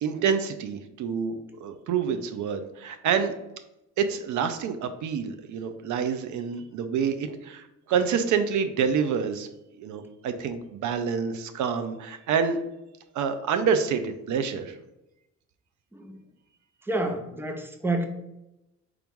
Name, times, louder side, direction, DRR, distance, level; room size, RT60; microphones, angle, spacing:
voice 1, 0.0-3.4 4.0-9.5 9.8-12.6 13.1-14.8, right 6 dB, 75° right, 9 dB, 0.6 m, -27 dB
voice 2, 16.9-18.1, right 2 dB, 5° right, 5 dB, 0.6 m, -28 dB
4.9 x 3.0 x 3.6 m, 0.91 s
cardioid pair, 90°, 30 cm